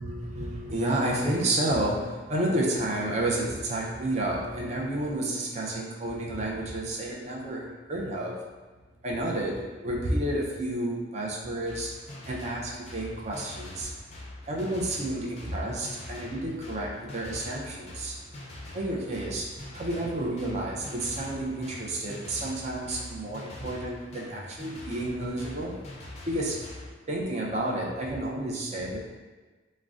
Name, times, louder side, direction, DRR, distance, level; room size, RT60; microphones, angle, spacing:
voice 1, 0.0-8.4 9.0-11.9 12.3-13.9 14.5-18.2 18.7-25.7 26.3-26.7 27.1-29.0, right 1 dB, 35° right, -2 dB, 0.4 m, -30 dB
sound 1, 11.7-26.9, left 1 dB, 35° left, 0.4 m, -44 dB
3.7 x 2.1 x 2.3 m, 1.3 s
head